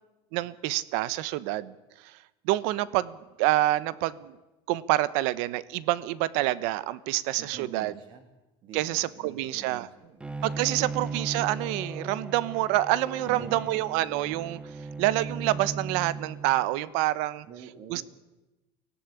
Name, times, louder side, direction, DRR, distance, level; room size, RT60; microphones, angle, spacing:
voice 1, 0.3-1.7 2.0-2.2 2.4-4.4 4.7-7.9 8.7-9.9 10.4-14.6 15.0-17.5 17.9-18.1, right 16 dB, 70° right, 18 dB, 1.1 m, -27 dB
voice 2, 7.4-8.3 8.6-10.2 13.2-13.9 17.5-18.1, right 7 dB, 40° right, 7 dB, 2.2 m, -46 dB
Bowed string instrument, 10.2-16.9, right 4 dB, 10° right, 1.1 m, -37 dB
24.0 x 18.0 x 9.8 m, 1.0 s
cardioid pair, 165°, 13 cm